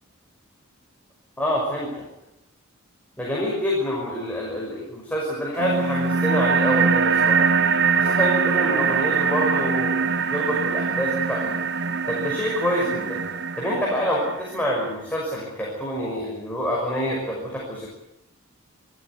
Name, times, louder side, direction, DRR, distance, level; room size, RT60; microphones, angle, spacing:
voice 1, 1.4-2.0 3.2-7.4 8.0-11.4 12.1-13.2 13.6-17.9, equal, 5° left, -4 dB, 5.9 m, -27 dB
sound 1, 5.6-14.6, right 5 dB, 50° right, 1.1 m, -23 dB
27.5 x 14.0 x 9.7 m, 0.87 s
head